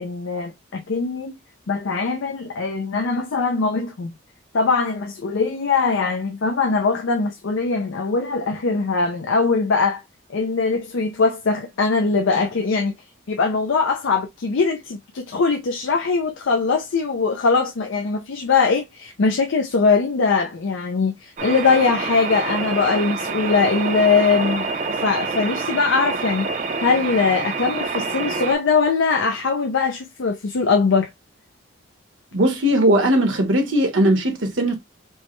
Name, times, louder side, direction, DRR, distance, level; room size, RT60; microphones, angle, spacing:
voice 1, 0.0-1.4 1.7-4.1 4.5-10.0 10.3-13.0 13.3-31.1, left 4 dB, 75° left, 0.5 m, -21 dB
sound 1, 21.4-28.5, right 4 dB, 35° right, 0.5 m, -27 dB
voice 2, 32.3-34.8, right 1 dB, 75° right, 1.1 m, -18 dB
4.6 x 2.1 x 3.1 m
head